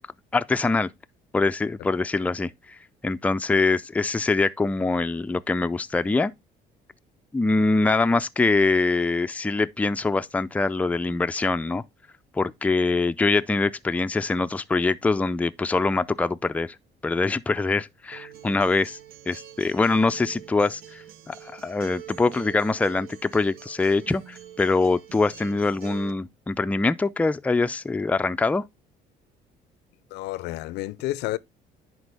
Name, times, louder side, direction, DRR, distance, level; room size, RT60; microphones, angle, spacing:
voice 1, 0.3-0.9 1.3-2.8 3.0-6.3 7.3-11.8 12.3-16.8 17.0-19.0 19.3-28.6, left 3 dB, 10° left, 0.4 m, -24 dB
Acoustic guitar, 18.1-26.1, right 11 dB, 65° right, 0.8 m, -45 dB
voice 2, 30.1-31.4, left 17 dB, 85° left, 0.5 m, -30 dB
10.5 x 4.5 x 3.3 m
cardioid pair, 110°, 17 cm